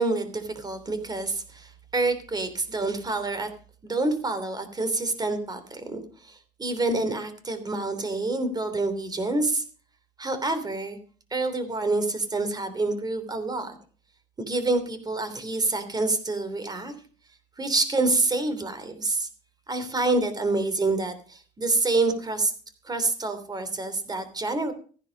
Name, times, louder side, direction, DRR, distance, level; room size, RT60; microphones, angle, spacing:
voice 1, 0.0-3.5 3.8-9.6 10.2-11.0 11.3-13.7 14.4-16.9 17.6-19.3 19.7-22.5 22.8-24.7, right 2 dB, 25° right, 10 dB, 3.0 m, -27 dB
14.5 x 10.5 x 5.2 m, 0.40 s
cardioid pair, 110°, 17 cm